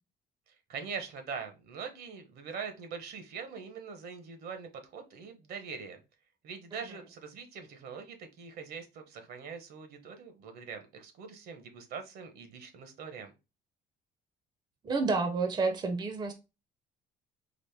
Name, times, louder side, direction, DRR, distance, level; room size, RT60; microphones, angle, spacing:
voice 1, 0.7-6.0 6.4-13.3, right 6 dB, 65° right, 0.9 m, -43 dB
voice 2, 14.8-16.3, right 4 dB, 25° right, 0.6 m, -29 dB
4.1 x 2.5 x 3.3 m
cardioid pair, 110°, 17 cm